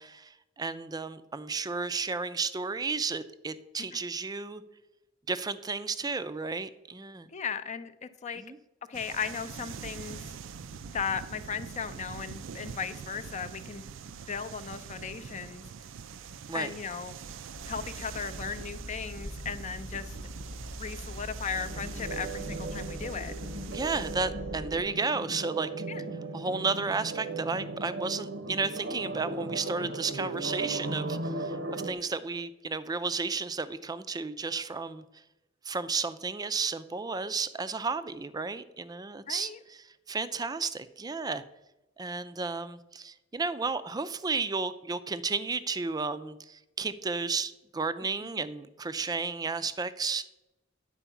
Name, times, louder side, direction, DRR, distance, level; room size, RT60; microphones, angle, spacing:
voice 1, 0.0-4.6 5.3-7.3 8.4-8.6 16.5-16.7 23.7-25.8 26.3-35.0 35.6-41.4 42.0-50.3, right 4 dB, 20° right, 13 dB, 0.4 m, -33 dB
voice 2, 7.3-8.4 8.9-10.2 10.9-13.8 14.3-15.7 16.5-17.2 17.7-20.2 20.8-23.3 25.9-26.0 39.3-39.6, left 6 dB, 35° left, 11 dB, 0.5 m, -36 dB
sound 1, 8.9-24.2, right 6 dB, 80° right, 0.4 m, -44 dB
sound 2, 17.6-24.8, equal, 85° left, 1.0 m, -42 dB
sound 3, 21.5-31.9, right 2 dB, 65° right, 0.8 m, -37 dB
10.0 x 4.6 x 7.0 m, 0.97 s
head